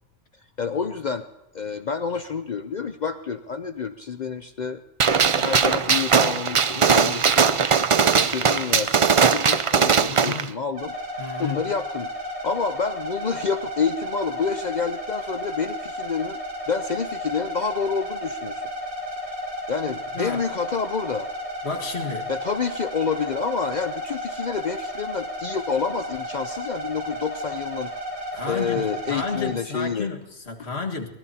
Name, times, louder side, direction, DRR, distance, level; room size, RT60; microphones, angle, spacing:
voice 1, 0.6-1.3 1.5-7.6 8.1-10.9 11.4-16.4 16.7-18.7 19.7-21.3 22.3-27.9 28.5-30.1, left 5 dB, 50° left, 10 dB, 0.7 m, -28 dB
Gunshot gunfire, 5.0-10.4, right 6 dB, 40° right, 0.5 m, -19 dB
voice 2, 10.1-10.5 11.2-11.6 20.1-20.4 21.6-22.3 28.3-31.1, left 4 dB, 65° left, 2 dB, 2.0 m, -31 dB
sound 1, 10.7-29.5, equal, 80° right, 7.1 m, -33 dB
23.5 x 18.5 x 2.8 m, 0.95 s
omnidirectional pair, 1.1 m